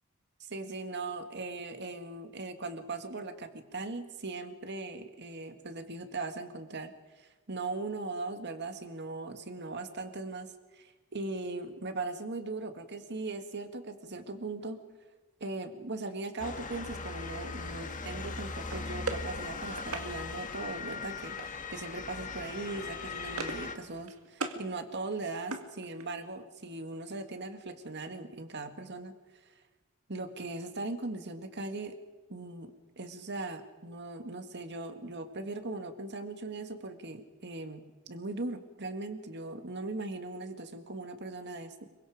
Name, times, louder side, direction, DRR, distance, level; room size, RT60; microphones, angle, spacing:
voice 1, 0.4-6.9 7.2-14.8 15.4-29.1 30.1-32.0 32.3-41.9, right 3 dB, 55° right, 7 dB, 2.0 m, -39 dB
Motor vehicle (road) / Siren, 16.4-23.8, left 4 dB, 40° left, 1.6 m, -39 dB
sound 1, 18.7-20.1 21.4-21.8 22.1-22.3 22.6-23.7 24.0-24.6 25.0-26.3, right 3 dB, 80° right, 2.0 m, -40 dB
26.5 x 23.5 x 5.0 m, 1.2 s
head